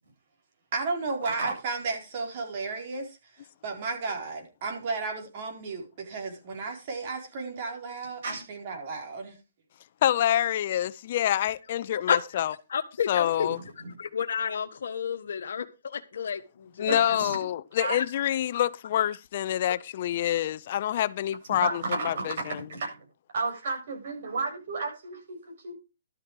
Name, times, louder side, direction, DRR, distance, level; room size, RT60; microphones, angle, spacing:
voice 1, 0.7-9.4, right 4 dB, 45° right, 4.3 m, -34 dB
voice 2, 10.0-12.5 13.1-13.6 16.8-22.7, left 11 dB, 50° left, 0.6 m, -27 dB
voice 3, 12.7-13.5 14.0-17.2 17.9-18.0, left 7 dB, 75° left, 1.4 m, -31 dB
voice 4, 16.9-17.4 17.8-18.0 21.5-23.0 23.3-25.7, right 3 dB, 65° right, 7.9 m, -32 dB
12.5 x 8.4 x 4.8 m
hypercardioid pair, 150°, 0 cm